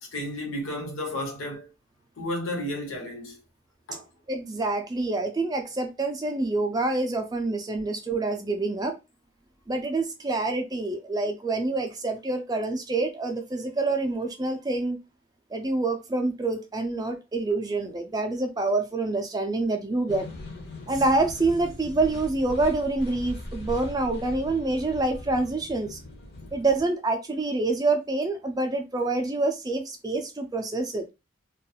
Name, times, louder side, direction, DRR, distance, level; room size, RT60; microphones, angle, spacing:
voice 1, 0.0-1.7 2.2-3.4 3.9-4.1, left 1 dB, 85° left, 0.9 m, -32 dB
voice 2, 4.3-9.0 9.7-15.0 15.5-20.3 20.9-26.0 26.5-31.1, right 2 dB, 20° right, 0.3 m, -27 dB
sound 1, 20.1-26.8, left 1 dB, 50° left, 0.6 m, -40 dB
2.4 x 2.3 x 2.7 m
head